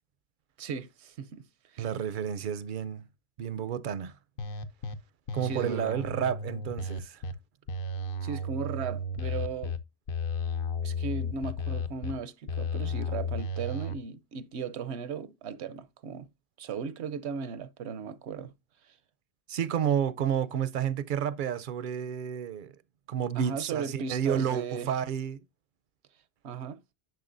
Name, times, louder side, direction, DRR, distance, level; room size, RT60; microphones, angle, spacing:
voice 1, 0.6-1.4 1.7-1.8 5.4-6.0 8.2-9.8 10.8-16.3 16.6-18.5 18.9-19.0 23.3-24.9 26.4-26.8, right 6 dB, 80° right, 1.0 m, -37 dB
voice 2, 1.8-3.0 3.4-4.1 5.3-7.2 19.5-22.7 23.1-25.4, right 8 dB, 60° right, 0.6 m, -30 dB
sound 1, 4.4-4.9 5.3-7.3 7.7-9.8 10.1-12.1 12.5-14.0, left 3 dB, 60° left, 0.9 m, -33 dB
10.5 x 6.6 x 2.5 m
omnidirectional pair, 1.1 m